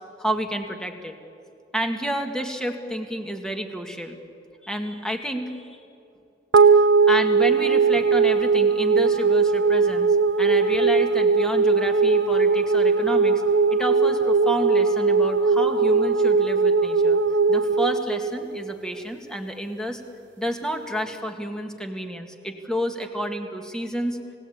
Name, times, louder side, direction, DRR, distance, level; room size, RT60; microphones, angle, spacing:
voice 1, 0.2-1.2 1.7-4.2 4.6-5.7 6.8-10.1 10.4-13.4 13.7-17.2 17.5-20.0 20.4-24.2, equal, 5° left, 4 dB, 1.8 m, -30 dB
sound 1, 6.5-19.1, right 4 dB, 70° right, 0.8 m, -19 dB
29.0 x 17.5 x 8.8 m, 2.6 s
head